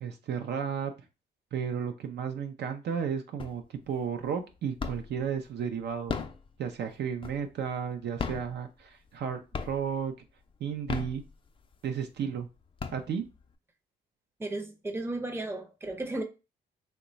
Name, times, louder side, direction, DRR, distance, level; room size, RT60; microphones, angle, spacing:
voice 1, 0.0-0.9 1.5-6.2 6.6-10.1 10.6-11.2 11.8-12.5 12.9-13.2, right 7 dB, 60° right, 0.5 m, -33 dB
sound 1, 3.4-3.9 4.2-5.3 5.9-7.7 8.1-9.2 9.5-10.1 10.7-11.7 12.2-12.3 12.6-13.5, left 5 dB, 25° left, 0.4 m, -36 dB
voice 2, 14.4-16.2, right 2 dB, 10° right, 0.6 m, -34 dB
3.0 x 2.2 x 3.9 m
cardioid pair, 90°, 20 cm